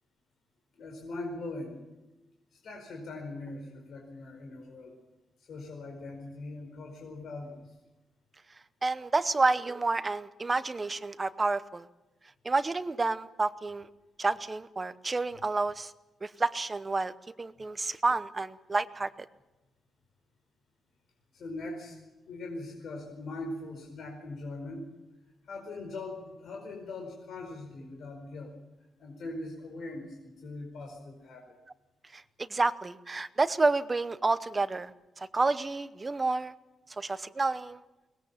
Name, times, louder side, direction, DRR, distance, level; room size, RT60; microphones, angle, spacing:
voice 1, 0.7-1.8 2.5-5.0 5.4-7.7 21.3-22.0 22.2-24.9 25.4-28.5 29.0-31.5, left 2 dB, 60° left, 2 dB, 4.8 m, -41 dB
voice 2, 8.8-11.9 12.4-13.9 14.2-15.9 16.2-19.1 32.1-36.5 36.9-37.8, right 3 dB, 20° right, 13 dB, 0.8 m, -29 dB
22.5 x 20.5 x 7.4 m, 1.0 s
wide cardioid pair, 170°, 0 cm